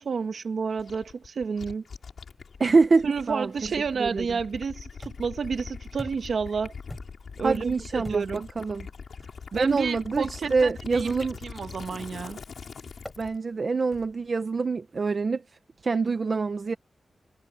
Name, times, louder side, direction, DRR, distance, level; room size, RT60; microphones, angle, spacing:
voice 1, 0.0-1.8 3.0-6.7 7.4-8.5 9.5-11.2 11.4-12.4, right 5 dB, 60° right, 1.3 m, -30 dB
Gurgling / Liquid, 0.8-13.4, left 5 dB, 60° left, 4.1 m, -42 dB
voice 2, 2.6-3.5 4.0-4.3 7.4-8.2 8.6-8.9 9.5-11.4 13.2-15.4 15.8-16.8, right 4 dB, 40° right, 0.8 m, -25 dB
sound 1, 5.0-5.4 6.0-6.4 6.9-7.3 8.0-8.5 9.2-9.4 10.9-11.3 12.0-12.3 13.1-13.3 13.9-14.3, equal, 5° left, 4.9 m, -44 dB
wide cardioid pair, 165°, 0 cm